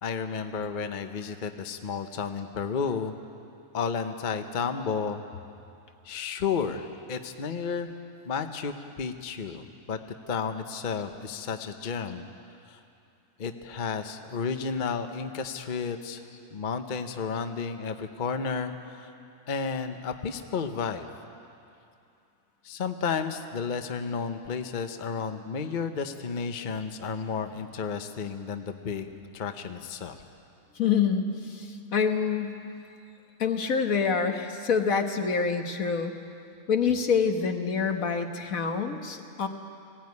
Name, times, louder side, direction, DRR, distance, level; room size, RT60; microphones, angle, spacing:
voice 1, 0.0-3.1 3.7-5.2 6.0-7.9 8.2-10.0 10.3-12.3 12.7-12.8 13.4-16.2 16.5-19.1 19.5-21.1 22.6-30.2, left 5 dB, 40° left, 7 dB, 0.9 m, -32 dB
voice 2, 30.7-32.6 33.4-36.1 36.7-39.5, left 6 dB, 70° left, 5 dB, 1.6 m, -26 dB
20.5 x 16.0 x 9.5 m, 2.5 s
omnidirectional pair, 1.5 m